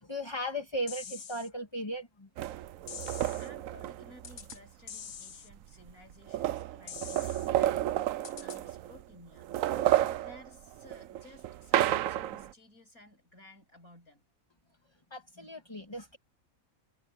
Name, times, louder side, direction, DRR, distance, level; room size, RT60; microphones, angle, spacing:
voice 1, 0.0-2.3 15.1-16.2, equal, 20° left, 1.9 m, -37 dB
sound 1, 0.9-1.5 2.9-3.5 4.2-4.6 4.9-5.5 6.9-7.5 8.2-8.6, left 7 dB, 55° left, 1.4 m, -44 dB
sound 2, 2.4-4.6 5.5-5.6 5.9-9.0 9.4-12.5, right 13 dB, 70° right, 1.0 m, -31 dB
voice 2, 3.4-14.2, left 1 dB, 75° left, 8.3 m, -56 dB
omnidirectional pair, 1.5 m